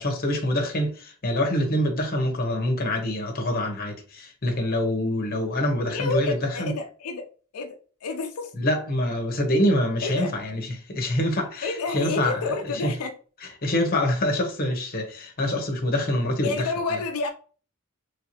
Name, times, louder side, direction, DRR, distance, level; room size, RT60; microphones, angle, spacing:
voice 1, 0.0-6.7 8.6-12.9 13.6-17.0, left 1 dB, 40° left, 0.8 m, -25 dB
voice 2, 5.9-7.3 7.5-8.5 10.0-10.3 11.6-13.1 16.4-17.3, left 4 dB, 90° left, 0.5 m, -29 dB
3.1 x 2.8 x 2.9 m
head